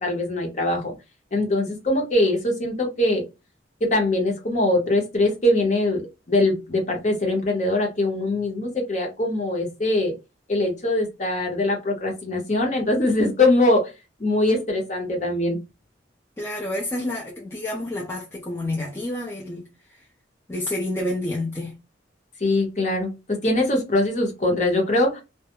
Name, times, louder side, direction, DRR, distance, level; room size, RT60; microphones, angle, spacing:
voice 1, 0.0-0.9 1.3-3.2 3.8-6.0 6.3-10.1 10.5-13.9 14.2-15.6 22.4-23.1 23.4-25.2, left 1 dB, 40° left, 0.8 m, -22 dB
voice 2, 16.4-19.6 20.5-21.8, left 1 dB, 15° left, 0.4 m, -29 dB
2.2 x 2.0 x 2.8 m
head